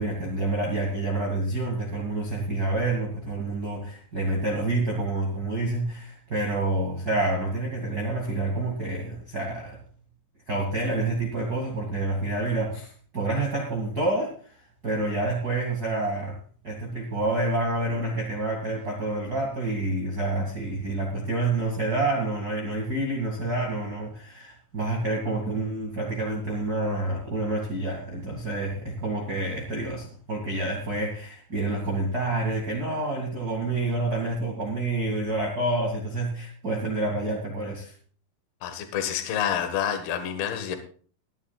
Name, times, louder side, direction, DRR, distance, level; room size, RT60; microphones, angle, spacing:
voice 1, 0.0-9.8 10.5-14.3 14.8-16.4 16.6-37.9, right 2 dB, 30° right, -1 dB, 1.8 m, -28 dB
voice 2, 38.6-40.8, left 9 dB, 65° left, 7 dB, 3.2 m, -28 dB
21.5 x 11.5 x 2.4 m, 0.43 s
omnidirectional pair, 5.1 m